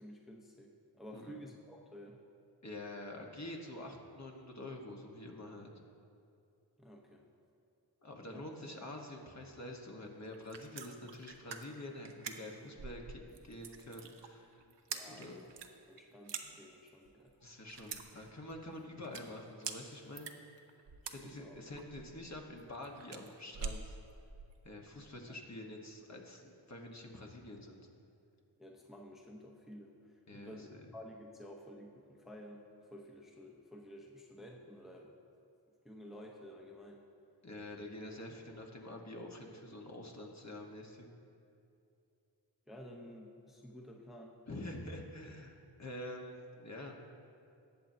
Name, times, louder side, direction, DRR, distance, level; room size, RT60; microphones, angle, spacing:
voice 1, 0.0-2.2 6.8-7.3 8.3-8.4 14.9-15.5 15.9-17.3 21.0-21.6 25.3-25.4 28.6-35.1 35.8-37.0 42.7-44.4, equal, ahead, -1 dB, 0.8 m, -52 dB
voice 2, 2.6-5.7 8.0-14.6 15.0-15.4 17.4-20.3 21.1-24.0 24.6-27.8 30.3-30.8 37.4-41.1 44.5-47.0, left 1 dB, 40° left, 1 dB, 1.3 m, -47 dB
sound 1, 10.3-24.6, right 5 dB, 75° right, 0.8 m, -46 dB
19.0 x 7.5 x 2.7 m, 2.6 s
wide cardioid pair, 95°, 42 cm